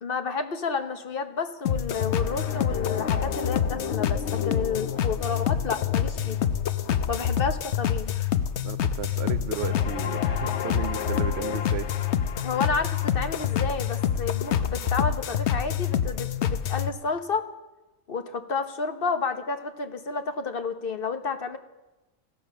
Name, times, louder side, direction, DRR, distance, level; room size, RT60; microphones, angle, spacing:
voice 1, 0.0-6.4 7.1-8.3 12.4-17.5 18.1-21.6, left 4 dB, 50° left, 9 dB, 1.3 m, -31 dB
sound 1, 1.7-16.9, left 9 dB, 70° left, 1.0 m, -27 dB
voice 2, 8.6-11.9, right 8 dB, 60° right, 13 dB, 0.9 m, -34 dB
16.0 x 12.5 x 6.5 m, 1.1 s
omnidirectional pair, 1.3 m